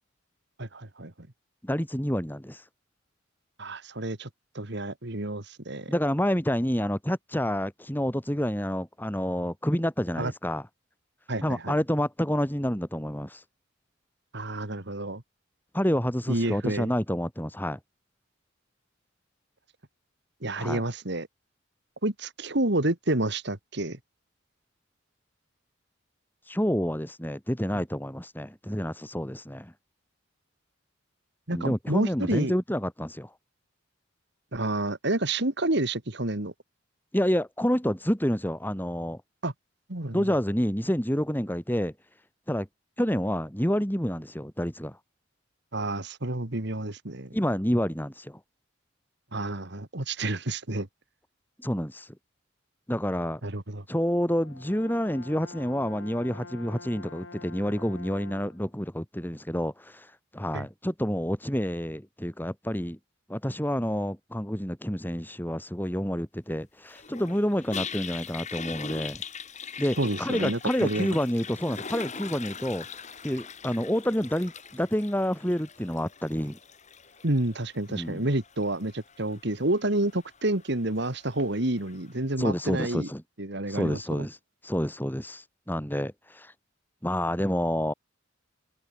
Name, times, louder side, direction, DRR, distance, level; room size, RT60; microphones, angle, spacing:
voice 1, 0.6-1.1 3.6-4.3 4.5-5.9 10.2-10.3 11.3-11.8 14.3-15.2 16.3-16.9 20.4-21.3 22.0-24.0 27.7-27.8 31.5-32.5 34.5-36.5 39.4-39.5 39.9-40.3 45.7-47.4 49.3-50.9 53.4-53.8 60.5-60.7 70.0-71.1 77.2-83.1 83.4-84.3, right 2 dB, 60° right, 2.4 m, -29 dB
voice 2, 1.6-2.6 5.9-10.6 11.4-13.4 15.7-17.8 20.6-20.8 26.5-29.7 31.5-33.3 37.1-39.2 40.1-41.9 42.5-42.7 43.0-45.0 47.3-48.4 51.6-52.1 52.9-53.4 53.9-63.0 63.3-69.2 69.8-72.9 73.2-76.6 77.9-78.2 82.4-83.2 83.7-84.4 84.6-86.5 87.0-87.9, equal, 10° left, 4.4 m, -28 dB
Brass instrument, 54.3-58.7, left 3 dB, 90° left, 6.7 m, -46 dB
Toilet flush, 66.9-82.1, left 6 dB, 35° left, 7.0 m, -42 dB
head